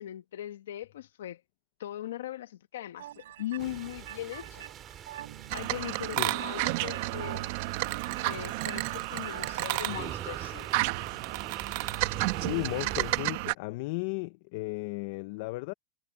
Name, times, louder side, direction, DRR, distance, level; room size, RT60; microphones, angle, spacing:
voice 1, 0.0-1.4 1.8-4.6 5.5-7.5 8.1-10.9, left 13 dB, 85° left, 1.2 m, -39 dB
sound 1, 3.0-10.2, right 13 dB, 75° right, 6.4 m, -46 dB
sound 2, 3.6-13.2, right 9 dB, 25° right, 4.2 m, -45 dB
sound 3, 5.5-13.5, right 20 dB, 50° right, 0.9 m, -32 dB
voice 2, 12.4-15.7, left 22 dB, 55° left, 0.5 m, -35 dB
supercardioid pair, 150°, 0 cm